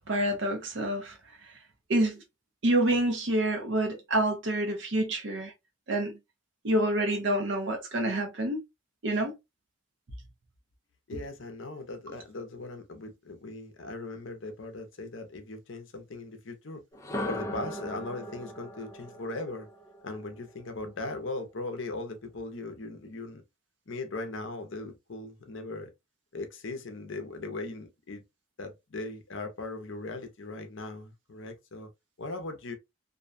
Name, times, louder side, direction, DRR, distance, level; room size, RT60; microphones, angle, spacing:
voice 1, 0.1-1.2 1.9-2.2 2.6-5.5 5.9-6.2 6.6-8.6 9.0-9.4, right 1 dB, 60° right, 0.7 m, -27 dB
voice 2, 11.1-16.8 17.2-19.7 20.0-23.4 23.9-25.9 26.3-28.2 28.6-31.9 32.2-32.8, left 2 dB, 65° left, 0.6 m, -39 dB
sound 1, 16.9-20.9, left 1 dB, 15° left, 0.4 m, -39 dB
2.6 x 2.2 x 2.5 m
head